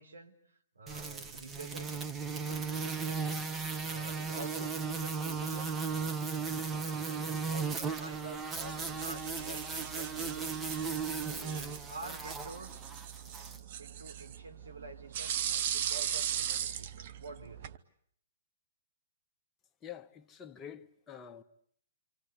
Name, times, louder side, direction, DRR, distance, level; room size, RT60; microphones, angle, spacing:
voice 1, 0.0-3.4 3.8-5.8 6.7-10.7 11.2-12.8 13.8-17.8, right 3 dB, 75° right, 3.7 m, -48 dB
sound 1, 0.9-13.6, right 5 dB, 15° right, 1.2 m, -36 dB
sound 2, 8.5-17.8, right 10 dB, 45° right, 1.1 m, -39 dB
voice 2, 19.8-21.4, left 9 dB, 20° left, 1.3 m, -47 dB
27.0 x 27.0 x 8.2 m
figure-of-eight pair, 120°, 0 cm